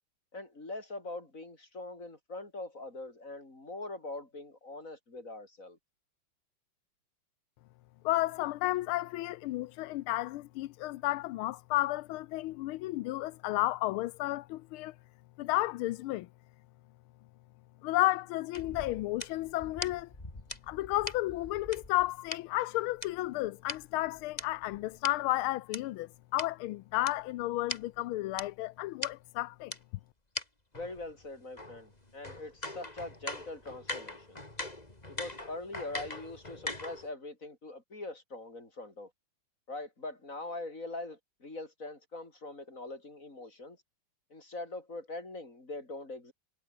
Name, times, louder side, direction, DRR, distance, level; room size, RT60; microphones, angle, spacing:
voice 1, 0.3-5.8 30.7-34.4 35.1-39.1 39.7-43.8 44.3-46.3, left 2 dB, 40° left, 6.0 m, -42 dB
voice 2, 8.0-14.9 15.4-16.3 17.8-20.1 20.7-29.7, left 17 dB, 90° left, 1.5 m, -32 dB
sound 1, 18.5-22.4 23.0-25.8 26.4-26.5 27.1-27.2 27.4-27.5 27.7-27.8 28.4-28.5 29.0-29.1 29.7-29.8 30.3-30.4 30.7-37.1, left 2 dB, 20° left, 3.4 m, -41 dB
omnidirectional pair, 2.3 m